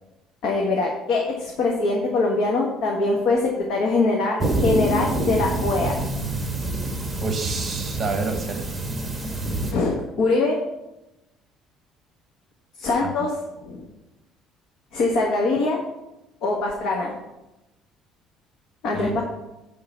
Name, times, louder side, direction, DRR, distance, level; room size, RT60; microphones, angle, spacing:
voice 1, 0.4-5.9 9.7-10.6 12.8-13.3 13.6-13.9 14.9-15.8 16.4-17.1 18.8-19.2, left 3 dB, 55° left, -1 dB, 1.5 m, -23 dB
sound 1, 4.4-9.7, right 1 dB, 10° right, 1.0 m, -26 dB
voice 2, 7.2-8.7 18.9-19.2, right 4 dB, 25° right, 5 dB, 0.9 m, -28 dB
10.5 x 3.9 x 6.8 m, 0.95 s
cardioid pair, 170°, 0 cm